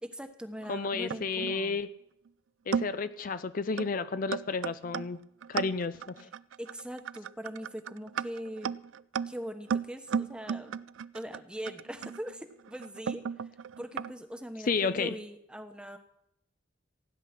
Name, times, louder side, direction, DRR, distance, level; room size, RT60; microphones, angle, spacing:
voice 1, 0.0-1.8 6.2-6.3 6.6-8.8 9.3-10.7 11.1-13.2 13.8-16.0, equal, 5° right, 7 dB, 1.1 m, -41 dB
sound 1, 0.6-1.6 2.3-2.4 2.7-3.1 3.8-4.0 4.3-14.1, right 7 dB, 80° right, 0.4 m, -35 dB
voice 2, 0.7-1.9 2.7-5.2 5.5-6.3 14.7-15.1, left 4 dB, 45° left, 13 dB, 0.5 m, -31 dB
16.5 x 10.0 x 5.9 m, 0.80 s
head